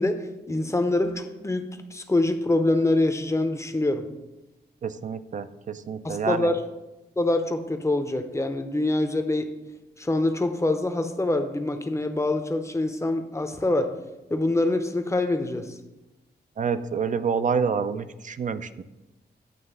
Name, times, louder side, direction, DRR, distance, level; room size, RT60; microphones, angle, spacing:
voice 1, 0.0-4.1 6.0-6.6 7.2-9.5 10.0-14.0 14.3-15.8, left 2 dB, 15° left, 7 dB, 0.6 m, -25 dB
voice 2, 4.8-6.5 16.6-18.8, right 6 dB, 45° right, 12 dB, 0.4 m, -28 dB
9.1 x 3.2 x 6.6 m, 1.0 s
wide cardioid pair, 115°, 18 cm